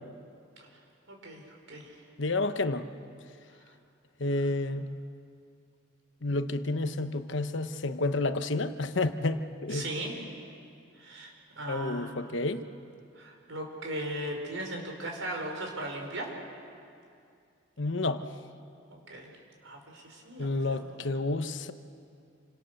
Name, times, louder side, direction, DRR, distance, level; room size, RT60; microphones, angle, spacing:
voice 1, 1.1-2.0 9.7-10.3 11.0-12.2 13.1-16.3 18.9-19.3 19.6-21.0, right 1 dB, 75° right, 1 dB, 4.9 m, -38 dB
voice 2, 2.2-2.9 4.2-5.0 6.2-9.9 11.7-12.6 17.8-18.2 20.4-21.7, left 2 dB, 65° left, 10 dB, 1.0 m, -30 dB
28.5 x 25.5 x 6.7 m, 2.4 s
head